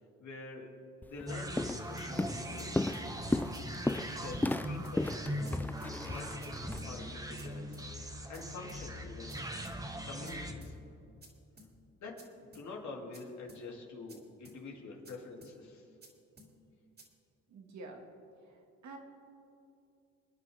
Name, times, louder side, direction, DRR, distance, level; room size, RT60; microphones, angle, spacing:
voice 1, 0.2-0.7 1.1-3.6 3.9-5.6 6.1-9.4 10.0-10.8 12.0-15.9, left 3 dB, 65° left, -1 dB, 3.1 m, -47 dB
Walk footsteps, 1.0-1.2 1.6-1.9 2.2-6.8, left 2 dB, 5° left, 0.4 m, -34 dB
sound 1, 1.3-10.5, equal, 10° right, 1.3 m, -41 dB
sound 2, 2.0-2.1 2.6-2.7 2.9-3.1 3.5-3.6 3.9-4.0 4.5-4.6 4.8-5.0 5.4-5.5 5.8-5.9 6.4-6.5 6.8-6.9 7.4-7.5 7.7-7.9 8.3-8.4 8.7-8.8 9.3-9.4 9.6-9.8 10.2-10.3 10.6-10.7 11.2-11.3 11.6-11.7 12.2-12.3 12.5-12.7 13.1-13.2 13.5-13.6 14.1-14.2 14.4-14.6 15.0-15.1 15.4-15.5 16.0-16.1 16.4-16.5 17.0-17.1, right 1 dB, 35° right, 3.1 m, -55 dB
voice 2, 17.5-18.0 18.5-19.0, right 3 dB, 65° right, 2 dB, 2.2 m, -48 dB
27.5 x 9.6 x 3.6 m, 2.7 s
cardioid pair, 90°, 30 cm